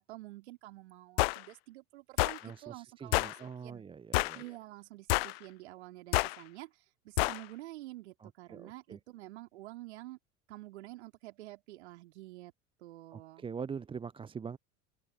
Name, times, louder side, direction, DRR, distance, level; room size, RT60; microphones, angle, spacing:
voice 1, 0.0-3.3 3.6-3.8 4.3-10.2 10.5-12.5 12.8-13.4, right 17 dB, 65° right, 3.3 m, -49 dB
sound 1, 1.2-1.4 2.2-2.4 3.1-3.4 4.1-4.4 5.1-5.4 6.1-6.4 7.2-7.4, left 22 dB, 55° left, 0.5 m, -28 dB
voice 2, 2.4-4.6 8.2-9.0 13.1-14.6, right 6 dB, 15° right, 0.6 m, -43 dB
open air
figure-of-eight pair, 70°, 37 cm